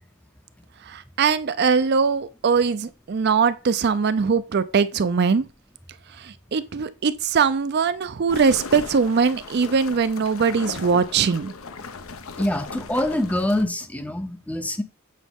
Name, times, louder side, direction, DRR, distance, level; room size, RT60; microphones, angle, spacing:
voice 1, 0.9-5.5 6.2-11.5, right 5 dB, 50° right, 0.4 m, -21 dB
sound 1, 8.3-13.6, left 4 dB, 70° left, 0.7 m, -37 dB
voice 2, 12.4-14.8, left 1 dB, 5° left, 0.6 m, -25 dB
8.3 x 5.1 x 3.6 m
head